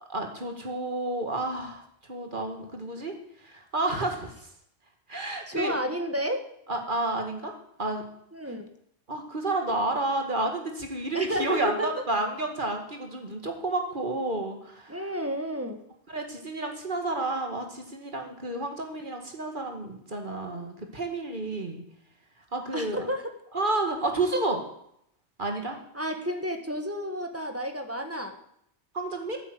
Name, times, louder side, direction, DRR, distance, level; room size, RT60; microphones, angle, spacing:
voice 1, 0.1-1.8 2.1-3.1 3.4-4.3 5.1-5.7 6.7-7.5 7.8-8.0 9.1-15.0 16.1-21.8 22.5-23.1 23.5-24.6 25.4-25.8 28.9-29.4, right 2 dB, 45° right, 4 dB, 2.4 m, -30 dB
voice 2, 5.5-6.5 8.3-8.7 11.1-12.0 14.9-15.8 22.7-23.3 25.9-28.4, equal, 15° right, 5 dB, 1.5 m, -31 dB
14.0 x 8.8 x 8.1 m, 0.72 s
omnidirectional pair, 1.1 m